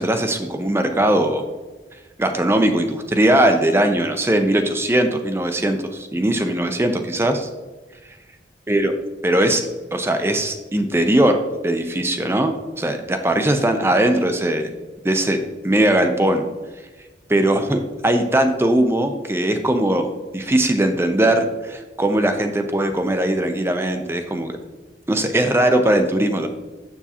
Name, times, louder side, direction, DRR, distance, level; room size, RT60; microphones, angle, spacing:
voice 1, 0.0-1.5 2.2-7.5 8.7-9.0 9.2-14.7 15.0-15.4 15.6-16.5 17.3-20.1 20.3-24.5 25.1-26.5, right 1 dB, 15° right, 6 dB, 0.4 m, -20 dB
7.1 x 7.0 x 2.8 m, 1.2 s
head